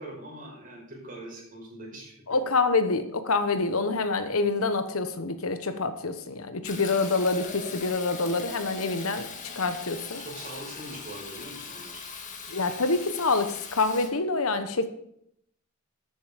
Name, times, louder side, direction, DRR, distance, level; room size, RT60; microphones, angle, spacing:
voice 1, 0.0-2.1 10.2-12.0, right 1 dB, 40° right, -3 dB, 5.5 m, -42 dB
voice 2, 2.3-9.3 9.5-10.2 12.5-14.9, left 3 dB, 75° left, 10 dB, 1.2 m, -26 dB
Fill (with liquid), 6.6-14.1, left 5 dB, 35° left, 1.8 m, -40 dB
13.0 x 7.9 x 5.1 m, 0.71 s
head